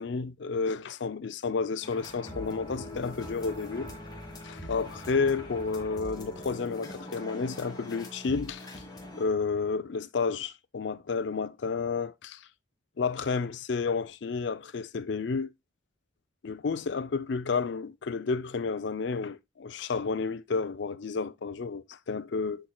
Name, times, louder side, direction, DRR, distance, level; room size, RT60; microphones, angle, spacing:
voice 1, 0.0-3.9 4.4-8.7 9.2-12.4 13.0-15.5 16.4-22.7, left 4 dB, 65° left, 0.5 m, -31 dB
sound 1, 1.8-9.3, left 1 dB, 20° left, 1.6 m, -42 dB
10.5 x 4.4 x 2.2 m
head